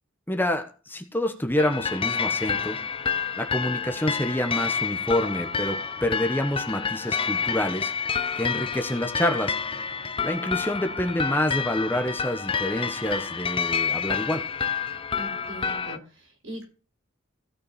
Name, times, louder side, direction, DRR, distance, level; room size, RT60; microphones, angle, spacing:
voice 1, 0.3-2.8 3.4-7.9 8.4-9.5 10.2-14.4, left 1 dB, 10° left, 6 dB, 1.1 m, -27 dB
sound 1, 1.6-16.0, left 6 dB, 25° left, 0.6 m, -29 dB
voice 2, 15.1-16.7, equal, 65° right, 0 dB, 5.4 m, -40 dB
16.5 x 6.2 x 4.2 m, 0.36 s
head